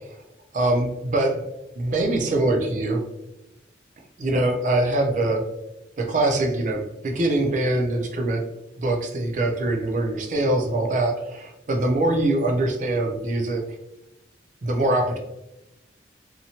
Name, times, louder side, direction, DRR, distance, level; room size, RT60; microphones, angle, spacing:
voice 1, 0.5-1.5 1.8-3.0 4.2-5.4 6.0-8.5 8.8-13.6 14.6-15.2, right 2 dB, 45° right, 2 dB, 0.4 m, -23 dB
2.7 x 2.1 x 2.7 m, 0.91 s
head